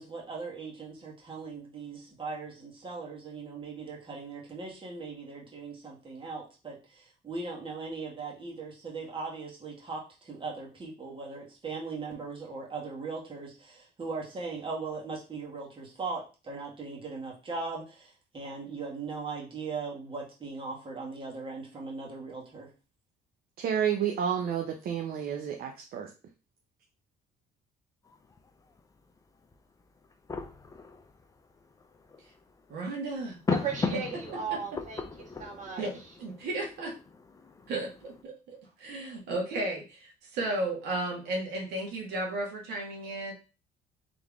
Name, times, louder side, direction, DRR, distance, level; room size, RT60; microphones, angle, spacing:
voice 1, 0.0-22.7, right 4 dB, 30° right, -2 dB, 1.8 m, -39 dB
voice 2, 23.6-26.1, right 8 dB, 60° right, 3 dB, 0.7 m, -30 dB
sound 1, 28.0-38.2, left 4 dB, 20° left, 0.5 m, -38 dB
voice 3, 32.7-33.4 34.5-34.6 35.8-35.9 36.2-36.9 37.7-43.3, right 2 dB, 80° right, -1 dB, 1.7 m, -34 dB
voice 4, 33.5-35.8, right 6 dB, 45° right, -1 dB, 1.8 m, -36 dB
3.8 x 3.5 x 3.5 m, 0.31 s
cardioid pair, 110°, 17 cm